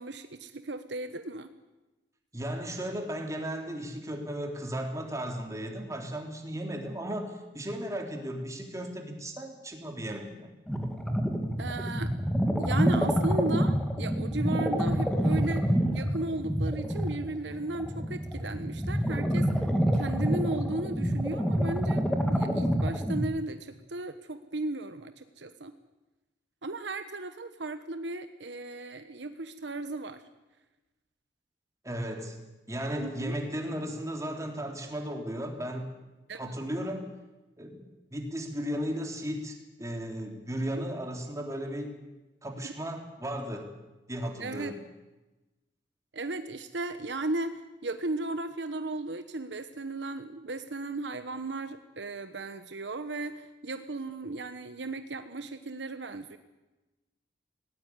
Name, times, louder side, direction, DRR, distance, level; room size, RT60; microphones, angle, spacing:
voice 1, 0.0-1.5 11.6-12.1 12.5-19.7 19.9-25.7 26.6-30.2 33.0-33.4 36.3-36.5 40.6-40.8 42.6-42.7 44.4-44.8 46.1-56.4, right 2 dB, 75° right, 9 dB, 1.1 m, -35 dB
voice 2, 2.3-10.5 31.8-32.4 32.7-35.9 36.3-37.1 37.6-37.8 38.1-42.0 42.4-43.7 44.1-44.8, equal, 20° right, 2 dB, 3.6 m, -35 dB
sound 1, 10.7-23.2, equal, 5° left, 2.1 m, -27 dB
18.5 x 18.5 x 9.6 m, 1.1 s
head